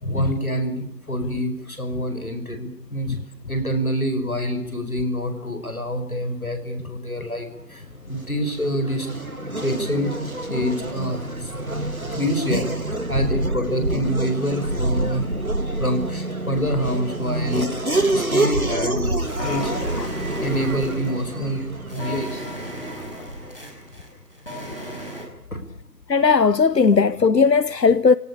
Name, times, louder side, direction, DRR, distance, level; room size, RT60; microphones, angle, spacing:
voice 1, 0.0-3.2 3.5-9.1 9.6-11.5 12.1-15.3 15.8-17.7 18.1-19.7 20.4-21.7 21.9-22.5 25.5-25.6, equal, 60° left, 5.9 m, -26 dB
Race car auto racing / Accelerating revving vroom, 8.0-23.6, right 2 dB, 60° right, 2.7 m, -27 dB
sound 1, 18.6-25.3, equal, 35° left, 5.2 m, -35 dB
voice 2, 26.1-28.2, left 5 dB, 85° left, 0.9 m, -17 dB
28.5 x 18.0 x 8.6 m
figure-of-eight pair, 180°, 48 cm